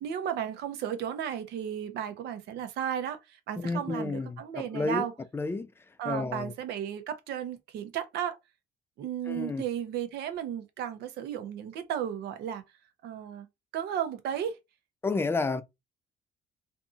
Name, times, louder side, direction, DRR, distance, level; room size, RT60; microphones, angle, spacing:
voice 1, 0.0-5.1 6.0-8.4 9.0-12.6 13.0-13.5 13.7-14.6, right 9 dB, 75° right, 0.7 m, -34 dB
voice 2, 3.6-5.1 5.3-5.7 6.1-6.5 9.3-9.6 15.0-15.6, left 3 dB, 15° left, 0.4 m, -31 dB
2.7 x 2.6 x 2.4 m
cardioid pair, 110°, 17 cm